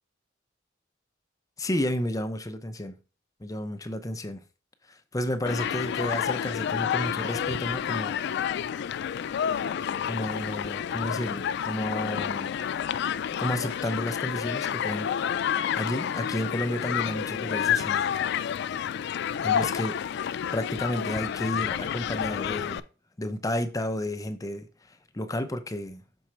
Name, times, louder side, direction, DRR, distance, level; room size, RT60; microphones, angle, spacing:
voice 1, 1.6-3.0 3.4-4.4 5.1-8.2 10.0-12.5 13.4-15.1 15.7-18.1 19.4-20.0 20.5-22.8 23.2-26.0, left 1 dB, 20° left, 0.6 m, -31 dB
Human group actions, 5.5-22.8, left 8 dB, 60° left, 0.3 m, -29 dB
6.3 x 4.2 x 4.4 m
head